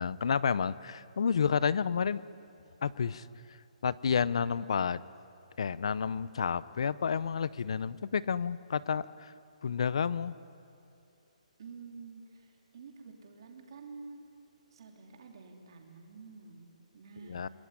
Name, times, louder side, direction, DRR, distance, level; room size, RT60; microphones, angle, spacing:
voice 1, 0.0-2.2 2.8-3.3 3.8-5.0 5.6-9.3 9.6-10.3 17.3-17.5, left 6 dB, 45° left, 19 dB, 0.6 m, -30 dB
voice 2, 11.6-14.3 14.7-17.5, right 4 dB, 40° right, 3 dB, 3.2 m, -49 dB
28.0 x 20.0 x 9.7 m, 2.7 s
hypercardioid pair, 180°, 4 cm